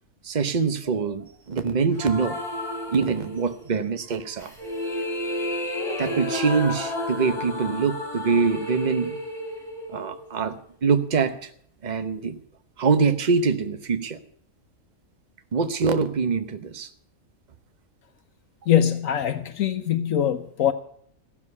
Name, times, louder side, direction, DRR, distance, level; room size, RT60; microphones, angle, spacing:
voice 1, 0.2-2.4 2.9-4.5 6.0-9.2 9.9-11.5 11.8-12.4 12.8-14.2 15.5-16.9, right 5 dB, 35° right, 1.0 m, -24 dB
sound 1, 2.0-3.7 4.4-10.5, left 1 dB, ahead, 4.6 m, -31 dB
voice 2, 18.7-20.7, left 10 dB, 70° left, 1.1 m, -22 dB
15.0 x 7.3 x 9.6 m
omnidirectional pair, 1.5 m